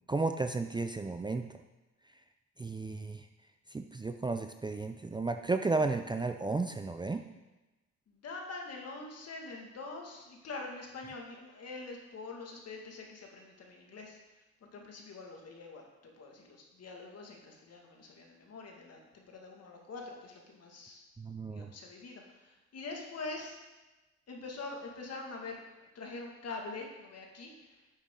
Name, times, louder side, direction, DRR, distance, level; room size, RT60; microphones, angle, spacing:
voice 1, 0.1-1.5 2.6-3.2 3.7-7.2 21.2-21.7, right 3 dB, 15° right, 6 dB, 0.5 m, -33 dB
voice 2, 8.1-14.2 14.7-21.0 21.5-23.6 24.3-25.6 25.9-27.8, left 3 dB, 55° left, 1 dB, 2.1 m, -44 dB
11.0 x 7.1 x 3.8 m, 1.1 s
cardioid pair, 90°, 30 cm